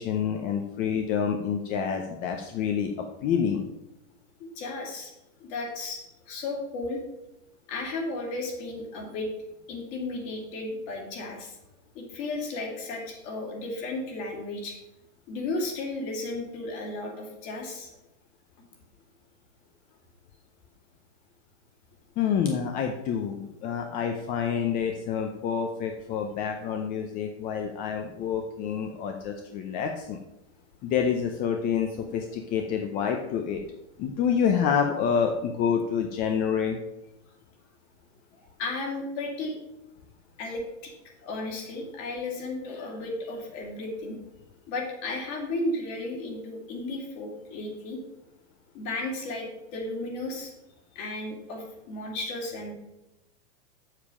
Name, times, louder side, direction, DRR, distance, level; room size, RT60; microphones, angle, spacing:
voice 1, 0.0-2.9 3.2-3.6 22.2-30.2 30.8-33.6 34.0-36.8, left 7 dB, 25° left, 4 dB, 0.5 m, -28 dB
voice 2, 4.4-5.1 5.4-7.0 7.7-9.3 9.7-11.6 11.9-14.8 15.3-17.9 38.6-39.6 40.4-40.9 41.2-44.2 44.7-48.0 48.7-50.5 50.9-52.7, left 2 dB, 40° left, 2 dB, 2.4 m, -34 dB
7.3 x 7.1 x 4.9 m, 0.92 s
supercardioid pair, 145°, 36 cm